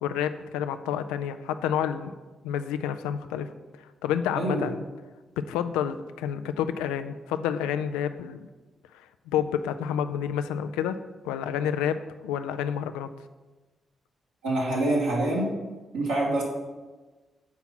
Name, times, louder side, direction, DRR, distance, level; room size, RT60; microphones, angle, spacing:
voice 1, 0.0-2.1 2.4-3.5 4.0-4.8 5.5-8.5 9.3-11.0 11.2-12.0 12.2-13.1, left 9 dB, 85° left, 10 dB, 0.4 m, -29 dB
voice 2, 4.3-4.7 14.4-15.5 15.9-16.4, right 1 dB, 90° right, -6 dB, 2.1 m, -25 dB
7.0 x 4.6 x 5.9 m, 1.2 s
hypercardioid pair, 40°, 0 cm